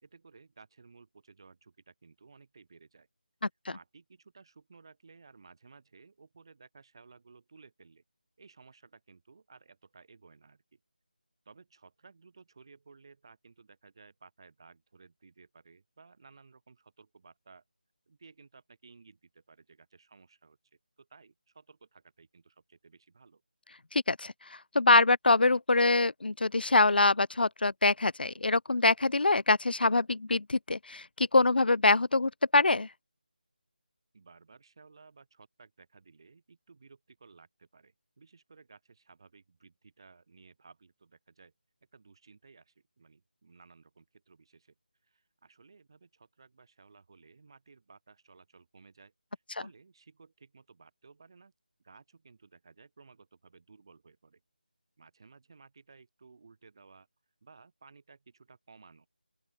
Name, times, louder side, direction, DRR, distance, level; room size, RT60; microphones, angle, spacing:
voice 1, 0.0-3.1 3.6-8.0 8.4-10.8 11.4-17.6 18.1-20.6 21.0-23.4 34.1-41.5 41.9-44.7 45.0-51.5 51.8-54.4 55.0-57.1 57.4-59.1, right 4 dB, 30° right, 3.4 m, -57 dB
voice 2, 23.9-24.3 24.7-32.9, left 3 dB, 85° left, 0.5 m, -24 dB
open air
figure-of-eight pair, 180°, 5 cm